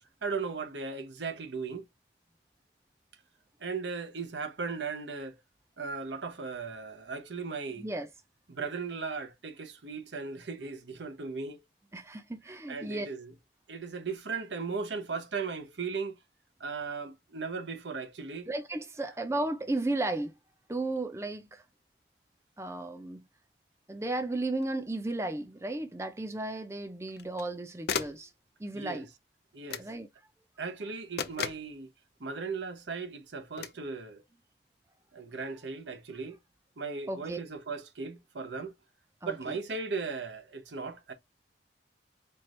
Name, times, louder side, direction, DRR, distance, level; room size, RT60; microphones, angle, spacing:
voice 1, 0.2-1.8 3.6-5.4 5.8-7.9 8.5-11.6 12.7-13.3 13.7-16.2 16.6-18.5 28.7-29.1 29.5-29.9 30.6-31.9 32.2-34.2 35.1-36.4 36.8-38.7 39.2-41.1, right 4 dB, 85° right, 0.9 m, -37 dB
voice 2, 7.8-8.1 11.9-13.1 18.5-20.3 20.7-21.6 22.6-23.2 23.9-28.3 28.6-29.1 29.8-30.1 37.1-37.4 39.2-39.6, right 2 dB, 15° right, 0.5 m, -34 dB
sound 1, 24.6-24.7 27.1-27.5 27.9-28.3 29.7-29.9 31.2-31.7 33.6-33.8, left 6 dB, 60° left, 0.5 m, -35 dB
4.5 x 2.4 x 3.2 m
head